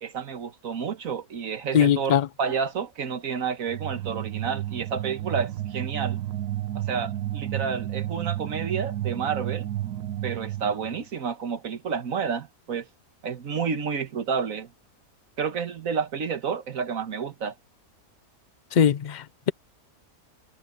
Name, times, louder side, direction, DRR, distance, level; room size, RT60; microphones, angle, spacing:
voice 1, 0.0-6.2 6.7-9.7 10.2-12.9 13.2-14.7 15.4-17.5, right 6 dB, 60° right, 1.7 m, -30 dB
voice 2, 1.7-2.3 18.7-19.5, left 8 dB, 65° left, 0.4 m, -21 dB
sound 1, 3.7-11.0, right 13 dB, 80° right, 1.3 m, -32 dB
omnidirectional pair, 1.6 m